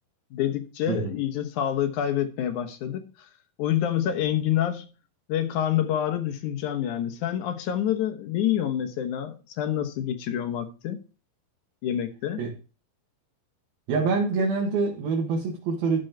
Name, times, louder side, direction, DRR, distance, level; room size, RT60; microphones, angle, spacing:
voice 1, 0.3-3.3 3.6-4.9 5.3-11.0 11.8-12.4, left 10 dB, 65° left, 2.3 m, -27 dB
voice 2, 13.9-16.0, right 4 dB, 80° right, 3.5 m, -25 dB
13.0 x 5.4 x 4.5 m
omnidirectional pair, 4.2 m